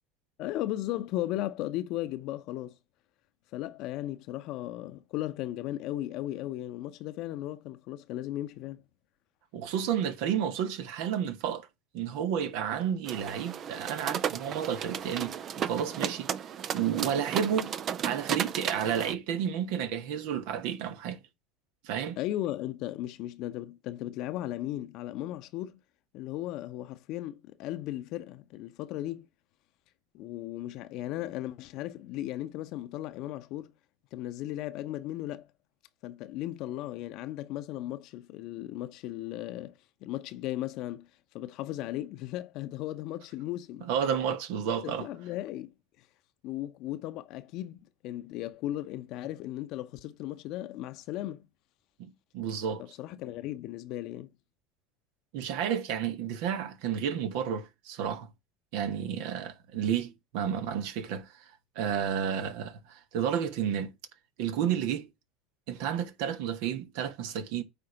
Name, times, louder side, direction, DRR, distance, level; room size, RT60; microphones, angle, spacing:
voice 1, 0.4-2.7 3.5-8.8 22.2-25.8 26.1-29.3 30.1-33.7 34.1-35.5 36.0-39.7 40.0-41.1 41.3-43.9 44.8-45.7 46.4-51.4 52.8-54.3, left 14 dB, 55° left, 0.8 m, -36 dB
voice 2, 9.5-11.7 11.9-15.3 15.6-16.3 16.7-17.7 18.0-21.2 21.8-22.2 43.9-45.1 52.0-52.8 55.3-58.3 58.7-61.3 61.7-63.9 64.4-65.1 65.7-67.6, right 8 dB, 60° right, 1.2 m, -31 dB
sound 1, 13.1-19.1, right 8 dB, 40° right, 0.6 m, -34 dB
9.0 x 3.6 x 5.8 m
hypercardioid pair, 75°, 0 cm